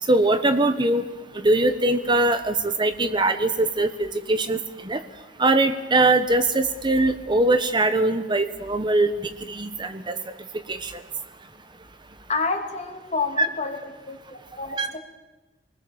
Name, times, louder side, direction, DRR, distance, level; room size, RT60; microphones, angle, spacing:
voice 1, 0.1-1.1 1.4-5.0 5.4-10.1 10.7-10.9 13.4-13.5 14.8-14.9, right 2 dB, 25° right, 9 dB, 1.2 m, -22 dB
voice 2, 12.3-13.8 14.1-15.0, left 4 dB, 40° left, 4 dB, 2.9 m, -29 dB
29.0 x 20.5 x 7.3 m, 1.1 s
head